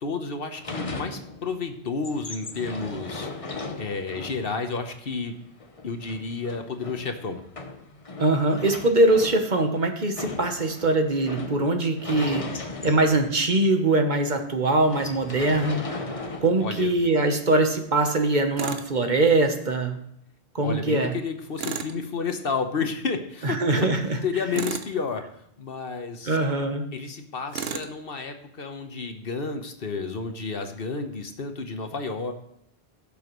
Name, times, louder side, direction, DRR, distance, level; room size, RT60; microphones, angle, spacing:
voice 1, 0.0-3.5 3.8-5.3 5.8-7.4 16.6-16.9 20.6-23.9 24.2-25.2 25.6-26.4 26.9-32.3, left 4 dB, 60° left, 6 dB, 1.2 m, -31 dB
sound 1, 0.6-1.6 1.9-13.6 14.0-14.1 14.3-14.5 14.9-17.1 18.0-18.3, left 3 dB, 35° left, 1.0 m, -37 dB
voice 2, 8.2-16.0 16.4-20.0 20.5-21.1 23.4-24.2 26.2-26.9, right 2 dB, 45° right, 5 dB, 1.3 m, -22 dB
Tools, 18.6-18.9 21.6-22.0 24.5-25.0 27.5-27.9, right 6 dB, 70° right, 1.0 m, -32 dB
16.0 x 6.9 x 3.1 m, 0.74 s
omnidirectional pair, 1.1 m